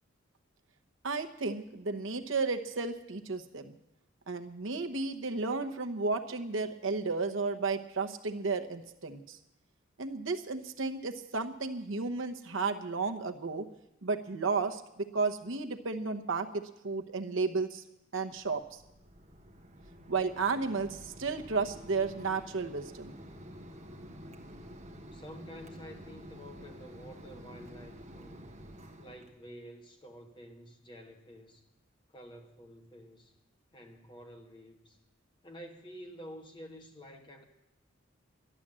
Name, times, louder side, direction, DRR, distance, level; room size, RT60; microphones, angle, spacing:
voice 1, 1.0-3.7 4.3-9.4 10.0-13.7 14.0-17.8 18.1-18.8 20.1-23.1, right 4 dB, 75° right, 5 dB, 1.0 m, -33 dB
Mechanisms, 18.4-29.3, equal, 35° right, 1.4 m, -49 dB
voice 2, 25.1-28.5 29.0-31.7 32.1-33.3 33.7-35.0 35.4-37.4, equal, 25° left, 3 dB, 1.4 m, -50 dB
12.5 x 11.5 x 7.5 m, 0.86 s
head